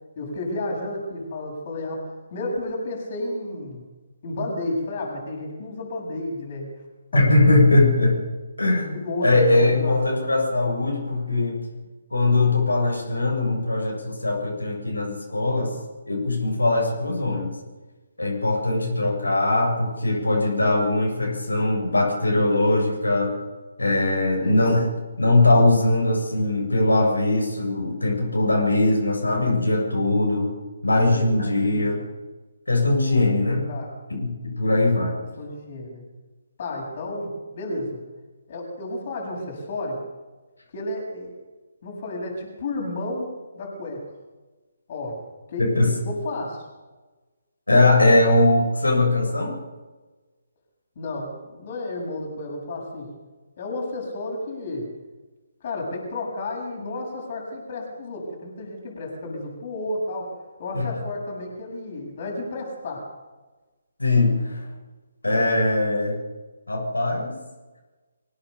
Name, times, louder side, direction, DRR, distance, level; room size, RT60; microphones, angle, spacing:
voice 1, 0.2-3.8 4.2-6.7 7.1-7.5 8.9-10.3 15.3-15.6 24.4-24.7 31.0-31.4 31.6-31.9 33.7-33.9 35.4-36.0 36.6-38.0 38.5-40.0 40.7-41.3 41.8-44.0 44.9-45.2 45.5-45.7 46.1-46.6 51.0-53.1 53.6-54.9 55.6-63.0, left 2 dB, 40° left, 0 dB, 7.7 m, -32 dB
voice 2, 7.1-8.2 8.6-9.0 9.2-11.6 12.1-15.7 16.1-17.5 18.2-23.3 23.8-24.8 25.2-30.5 30.8-32.0 32.7-33.7 34.1-35.1 45.6-45.9 47.7-49.5 60.7-60.9 64.0-64.6 65.2-66.2 66.7-67.3, left 2 dB, 75° left, -1 dB, 7.5 m, -20 dB
25.0 x 17.5 x 6.9 m, 1.2 s
figure-of-eight pair, 140°, 0 cm